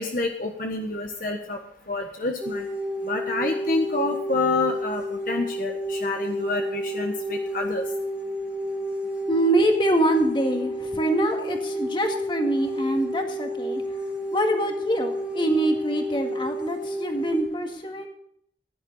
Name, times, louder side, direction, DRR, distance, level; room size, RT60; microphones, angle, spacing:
voice 1, 0.0-1.6 1.9-2.7 3.0-7.8, left 2 dB, 50° left, 3 dB, 1.3 m, -28 dB
sound 1, 2.4-17.4, equal, 5° right, 2.2 m, -30 dB
voice 2, 9.3-13.8 14.3-18.1, right 1 dB, 25° left, 3 dB, 1.9 m, -24 dB
16.0 x 11.0 x 4.0 m, 0.66 s
head